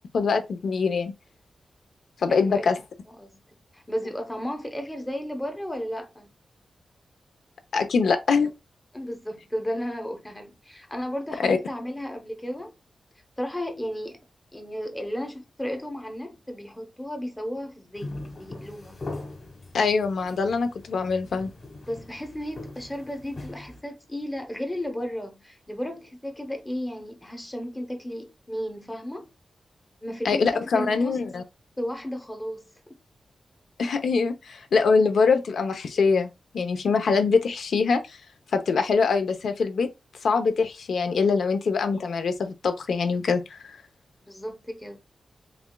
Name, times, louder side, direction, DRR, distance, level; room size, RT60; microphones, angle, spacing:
voice 1, 0.1-1.1 2.2-2.8 7.7-8.5 11.4-11.6 19.7-21.5 30.2-31.4 33.8-38.0 38.5-39.9 40.2-43.8, left 5 dB, 85° left, 0.7 m, -23 dB
voice 2, 2.3-2.6 3.1-6.3 8.9-12.7 13.4-14.2 14.5-19.1 21.9-29.3 30.0-31.2 31.8-32.7 44.3-45.0, equal, 10° left, 0.7 m, -34 dB
sound 1, 17.9-23.8, left 2 dB, 35° left, 1.2 m, -41 dB
6.8 x 2.4 x 2.2 m
wide cardioid pair, 175°, 0 cm